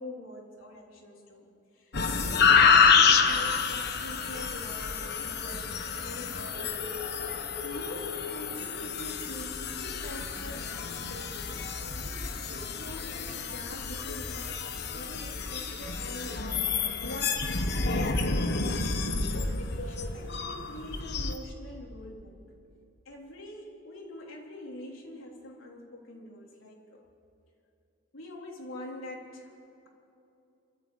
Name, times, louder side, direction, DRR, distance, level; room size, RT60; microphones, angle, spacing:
voice 1, 0.0-6.8 7.6-11.7 12.1-14.6 14.9-16.4 17.0-18.0 19.3-22.5 23.1-27.0 28.1-29.6, left 1 dB, 85° left, -1 dB, 3.6 m, -44 dB
sound 1, 1.9-21.4, left 5 dB, 50° left, 1.2 m, -28 dB
27.5 x 13.0 x 8.6 m, 2.7 s
head